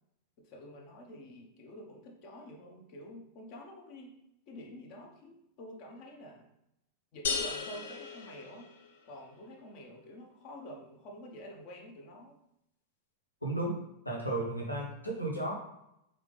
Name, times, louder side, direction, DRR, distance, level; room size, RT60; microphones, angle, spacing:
voice 1, 0.4-4.1 4.5-6.5 7.1-8.7 9.1-12.4, equal, 45° left, -1 dB, 1.0 m, -48 dB
sound 1, 7.2-9.1, left 5 dB, 60° left, 0.5 m, -36 dB
voice 2, 13.4-15.5, right 2 dB, 85° left, -3 dB, 1.0 m, -34 dB
4.0 x 3.3 x 3.4 m, 0.82 s
figure-of-eight pair, 90°, 0 cm